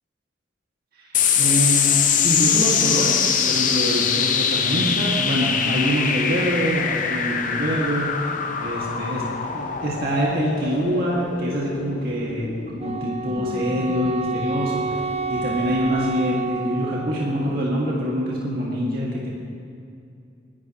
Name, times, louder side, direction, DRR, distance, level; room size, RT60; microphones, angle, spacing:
voice 1, 1.0-8.1 8.6-9.2 9.5-19.3, equal, 55° right, -5 dB, 2.1 m, -25 dB
sound 1, 1.1-15.9, left 7 dB, 45° left, 0.8 m, -24 dB
Wind instrument woodwind instrument, 12.8-17.6, right 4 dB, 35° right, 0.6 m, -29 dB
20.0 x 12.0 x 3.1 m, 2.5 s
head